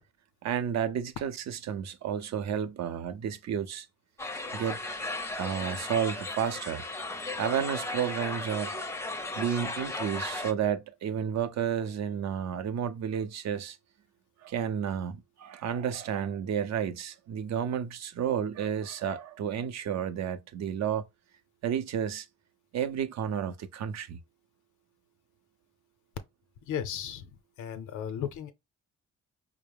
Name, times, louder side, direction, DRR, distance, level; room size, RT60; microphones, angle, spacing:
voice 1, 0.4-3.9 4.5-4.8 5.4-6.8 7.4-8.8 9.4-13.8 14.4-21.0 21.6-22.3 22.7-24.2, right 8 dB, 60° right, 0.6 m, -31 dB
sound 1, 4.2-10.5, left 2 dB, 10° left, 0.5 m, -36 dB
voice 2, 26.6-28.5, left 9 dB, 80° left, 0.6 m, -36 dB
4.6 x 2.0 x 3.3 m
cardioid pair, 90°, 30 cm